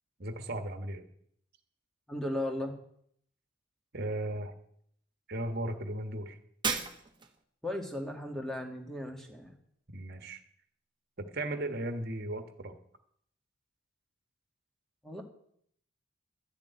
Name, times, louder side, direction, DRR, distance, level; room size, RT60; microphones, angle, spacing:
voice 1, 0.2-1.0 3.9-4.5 5.3-6.4 9.9-10.4 11.2-12.8, right 1 dB, 50° right, 8 dB, 1.4 m, -36 dB
voice 2, 2.1-2.8 7.6-9.5 15.0-15.2, left 1 dB, ahead, 2 dB, 1.8 m, -36 dB
Shatter, 6.6-7.4, right 5 dB, 20° right, 1.1 m, -34 dB
12.0 x 6.9 x 9.4 m, 0.67 s
head